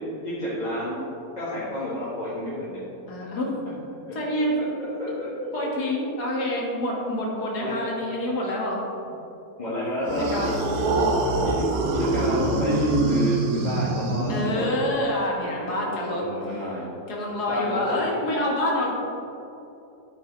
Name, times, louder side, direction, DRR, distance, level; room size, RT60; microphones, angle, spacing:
voice 1, 0.2-1.0 1.4-2.8 4.1-4.2 4.8-5.3 7.6-7.7 9.6-11.1 11.4-11.6 11.9-14.7 15.6-16.8 17.5-18.0, left 1 dB, 30° left, -10 dB, 1.5 m, -30 dB
voice 2, 3.1-3.5 4.1-4.6 5.5-8.8 10.2-10.6 14.3-16.7 17.1-18.9, left 1 dB, 90° left, -3 dB, 2.0 m, -27 dB
sound 1, 10.1-14.9, right 2 dB, 75° right, 1.3 m, -24 dB
9.1 x 8.1 x 3.1 m, 2.9 s
omnidirectional pair, 1.6 m